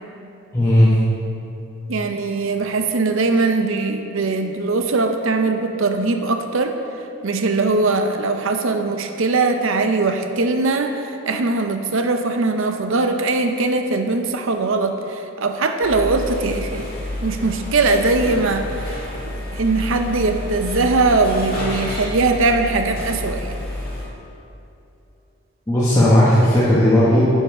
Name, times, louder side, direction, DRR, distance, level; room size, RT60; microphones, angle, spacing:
voice 1, 0.5-0.9 25.7-27.2, left 1 dB, 15° left, -10 dB, 1.1 m, -15 dB
voice 2, 1.9-6.7 7.2-16.8 17.2-19.0 19.3-23.5, right 3 dB, 60° right, 5 dB, 0.6 m, -20 dB
sound 1, 15.8-24.0, left 1 dB, 40° left, 1.8 m, -29 dB
10.5 x 5.5 x 4.8 m, 2.7 s
head